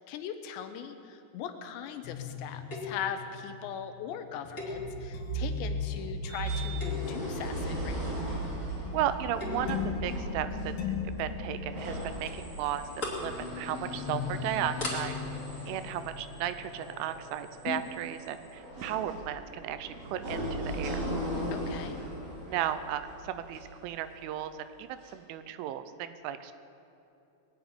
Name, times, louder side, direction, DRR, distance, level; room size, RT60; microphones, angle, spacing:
voice 1, 0.0-8.1 21.5-22.0, left 8 dB, 80° left, 8 dB, 2.8 m, -40 dB
sound 1, 2.0-17.3 17.7-17.8, left 3 dB, 65° left, 2.7 m, -37 dB
sound 2, 2.7-3.1 4.6-5.3 5.8-6.1 6.7-7.2 9.2-9.8 11.2-11.5 11.8-11.9 12.3-12.4 12.8-13.3 13.7-13.9 14.4-14.5 14.8-15.0, left 2 dB, 25° left, 2.1 m, -38 dB
sound 3, 6.3-24.4 25.0-25.1, right 1 dB, 55° right, 5.7 m, -39 dB
voice 2, 8.9-10.7 11.2-12.8 13.2-15.2 15.7-21.0 22.5-24.5 24.8-26.5, right 11 dB, 85° right, 11 dB, 3.1 m, -35 dB
21.0 x 7.2 x 9.6 m, 2.8 s
omnidirectional pair, 5.5 m